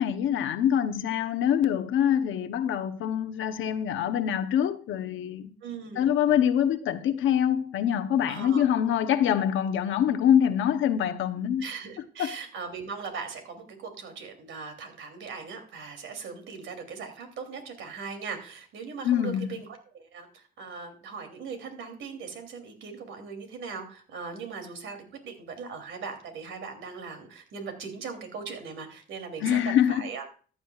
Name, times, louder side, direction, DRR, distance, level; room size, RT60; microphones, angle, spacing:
voice 1, 0.0-5.5 6.0-11.7 12.2-12.4 19.0-19.5 29.4-30.0, left 9 dB, 80° left, 0.9 m, -25 dB
voice 2, 5.6-6.1 8.3-8.7 11.6-19.7 19.9-30.3, right 5 dB, 75° right, 3.0 m, -39 dB
14.0 x 9.9 x 2.4 m
cardioid pair, 90°, 20 cm